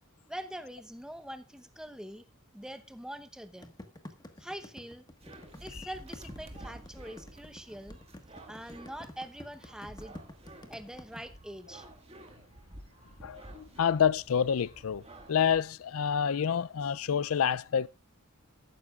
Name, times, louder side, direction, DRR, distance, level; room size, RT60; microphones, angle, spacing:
voice 1, 0.3-2.2 2.5-3.7 4.4-5.1 5.5-8.0 8.5-10.1 10.7-11.9, right 1 dB, 5° right, 0.9 m, -44 dB
sound 1, 3.6-11.2, left 1 dB, 20° left, 1.5 m, -48 dB
sound 2, 5.2-15.6, right 1 dB, 30° right, 1.8 m, -51 dB
voice 2, 13.2-15.0 15.3-17.9, left 8 dB, 80° left, 0.4 m, -28 dB
14.5 x 12.0 x 2.4 m
head